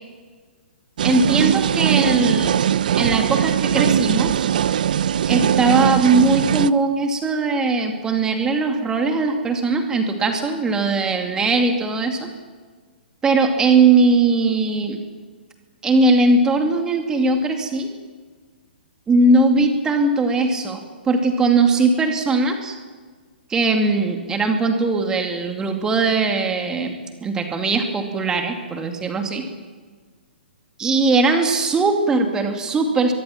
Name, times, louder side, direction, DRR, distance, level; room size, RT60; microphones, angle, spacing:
voice 1, 1.0-2.6 3.0-4.5 5.3-12.3 13.2-15.0 15.8-17.9 19.1-22.8 23.5-29.4 30.8-33.1, right 3 dB, 10° right, 5 dB, 2.4 m, -19 dB
sound 1, 1.0-6.7, right 9 dB, 50° right, 0.6 m, -20 dB
23.0 x 22.5 x 6.0 m, 1.5 s
figure-of-eight pair, 120°, 6 cm